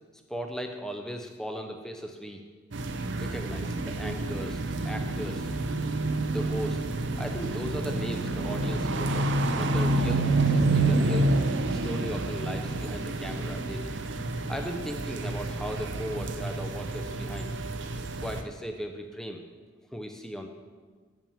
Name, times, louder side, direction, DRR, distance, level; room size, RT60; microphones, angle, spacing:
voice 1, 0.3-2.4 3.1-4.6 4.8-5.5 6.3-6.9 7.2-11.3 11.7-14.0 14.5-17.5 18.2-19.4 19.9-20.5, equal, 5° left, 4 dB, 0.6 m, -37 dB
sound 1, 2.7-18.4, right 2 dB, 65° right, 0.6 m, -28 dB
7.2 x 5.9 x 7.0 m, 1.5 s
head